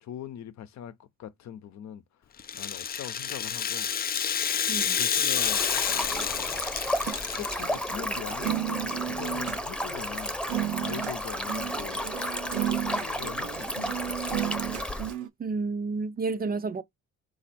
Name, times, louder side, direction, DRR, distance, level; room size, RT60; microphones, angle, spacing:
voice 1, 0.0-2.0 2.5-3.9 4.7-5.7 6.3-6.6 7.2-10.4 10.8-12.1 12.8-14.6, left 10 dB, 65° left, 0.7 m, -42 dB
Rattle (instrument), 2.4-7.9, left 8 dB, 30° left, 0.4 m, -29 dB
voice 2, 4.7-5.0 15.4-16.8, right 4 dB, 30° right, 0.5 m, -30 dB
Stream, 5.3-15.1, equal, 5° left, 0.8 m, -33 dB
sound 1, 5.9-9.6 10.1-10.2 10.5-11.2 11.5-15.3, right 12 dB, 80° right, 0.9 m, -34 dB
4.1 x 2.7 x 4.2 m
cardioid pair, 90°, 30 cm